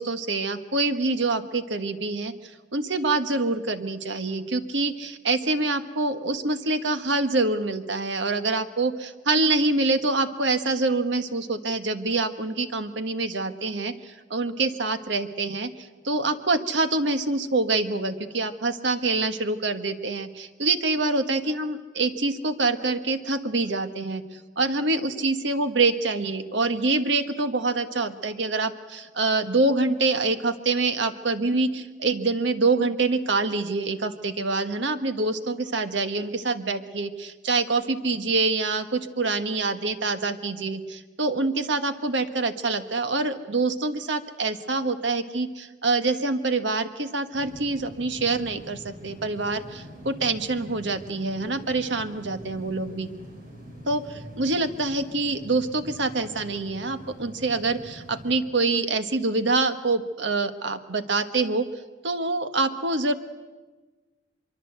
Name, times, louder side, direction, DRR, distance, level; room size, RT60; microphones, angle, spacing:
voice 1, 0.0-2.3 2.7-13.9 14.3-15.7 16.0-24.2 24.6-53.1 53.9-61.7 62.0-63.1, right 3 dB, 65° right, 9 dB, 1.5 m, -25 dB
sound 1, 47.3-58.3, equal, 45° right, 6.3 m, -44 dB
24.5 x 23.5 x 8.1 m, 1.3 s
head